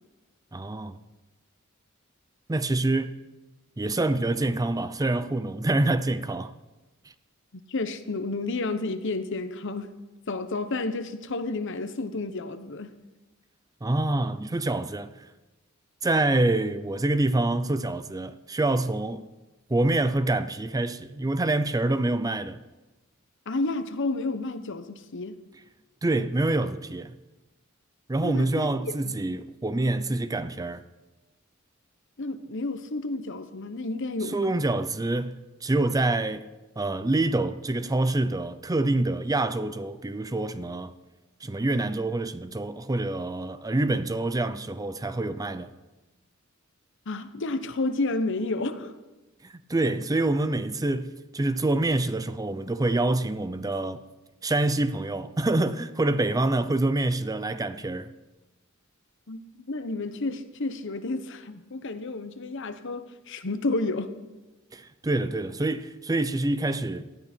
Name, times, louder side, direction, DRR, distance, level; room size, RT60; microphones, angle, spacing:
voice 1, 0.5-1.0 2.5-3.2 3.8-6.5 13.8-15.3 16.0-19.3 19.7-22.6 26.0-27.2 28.1-30.8 34.2-36.5 36.8-40.9 41.4-45.7 49.4-54.0 54.4-58.1 64.7-67.1, right 2 dB, 15° right, 0.5 m, -26 dB
voice 2, 7.7-9.9 10.3-12.9 23.5-25.4 28.2-29.1 32.2-34.5 47.1-49.0 59.3-64.1, left 2 dB, 60° left, 1.0 m, -31 dB
18.5 x 13.5 x 4.5 m
head